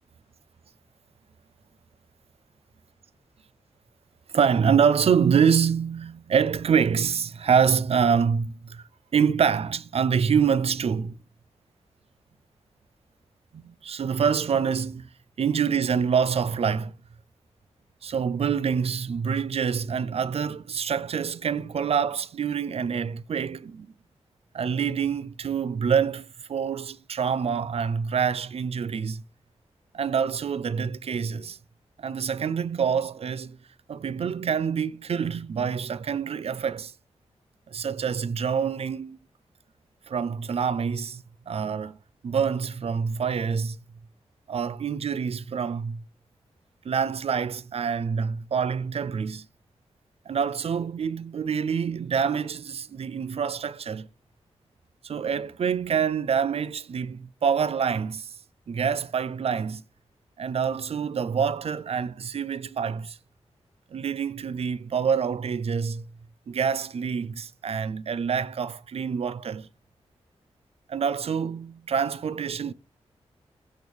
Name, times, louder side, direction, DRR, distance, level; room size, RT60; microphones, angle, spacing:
voice 1, 4.3-8.8 9.1-11.2 13.5-15.0 15.4-16.9 18.0-23.9 24.5-29.2 29.9-31.6 32.0-33.6 33.9-36.9 37.7-39.2 40.1-42.0 42.2-43.8 44.5-46.0 46.8-49.5 50.3-54.1 55.0-58.4 58.7-59.8 60.4-63.2 63.9-66.0 66.5-69.7 70.9-72.7, right 7 dB, 60° right, 0.5 m, -26 dB
15.5 x 7.0 x 3.4 m
wide cardioid pair, 110°, 11 cm